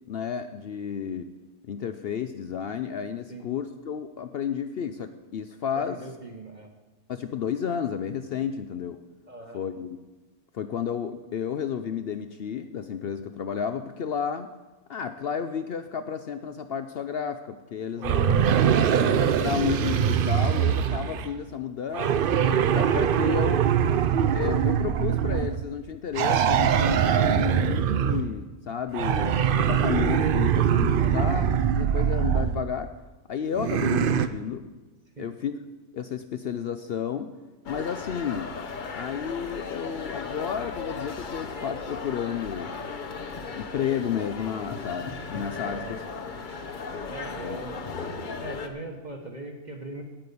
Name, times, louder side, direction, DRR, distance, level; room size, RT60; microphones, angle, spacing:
voice 1, 0.1-1.3 1.6-6.0 7.1-9.0 9.5-10.0 10.5-14.5 14.9-18.4 19.0-23.6 24.3-32.9 33.3-34.7 35.2-35.6 35.9-37.3 37.7-38.5 38.9-42.7 43.3-46.0 47.4-47.6, left 7 dB, 70° left, 9 dB, 0.5 m, -32 dB
voice 2, 5.9-6.7 9.3-9.6 31.0-31.3 35.2-35.3 45.7-46.0 47.1-47.9 48.4-50.0, right 2 dB, 35° right, 3 dB, 1.1 m, -41 dB
sound 1, 18.0-21.3 21.9-25.6 26.1-28.3 28.9-32.6 33.6-34.3, right 8 dB, 80° right, 0.4 m, -23 dB
sound 2, 37.7-48.7, left 4 dB, 40° left, 0.8 m, -36 dB
9.4 x 9.1 x 6.8 m, 1.2 s
omnidirectional pair, 1.6 m